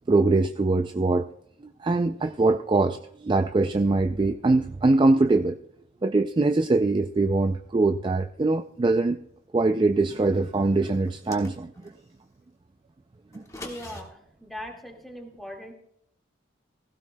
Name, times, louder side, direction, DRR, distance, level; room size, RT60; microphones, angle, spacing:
voice 1, 0.1-1.3 1.8-5.6 6.0-9.2 9.5-11.9 13.3-13.4, right 3 dB, 25° right, 8 dB, 0.3 m, -23 dB
sound 1, 11.0-12.0 13.3-14.0, left 1 dB, 15° left, 1.5 m, -42 dB
voice 2, 13.6-15.7, left 1 dB, ahead, 1 dB, 1.9 m, -40 dB
16.5 x 15.5 x 2.2 m, 0.73 s
head